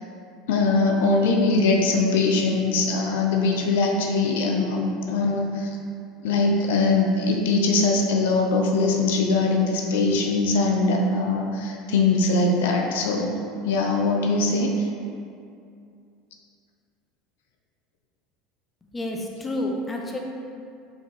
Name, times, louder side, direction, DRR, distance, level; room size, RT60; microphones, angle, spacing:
voice 1, 0.5-5.7 6.2-13.3 13.6-14.9, left 3 dB, 75° left, 1 dB, 0.7 m, -22 dB
voice 2, 18.9-20.2, left 1 dB, 15° left, 0 dB, 0.9 m, -29 dB
5.7 x 4.6 x 4.1 m, 2.4 s
hypercardioid pair, 85°, 0 cm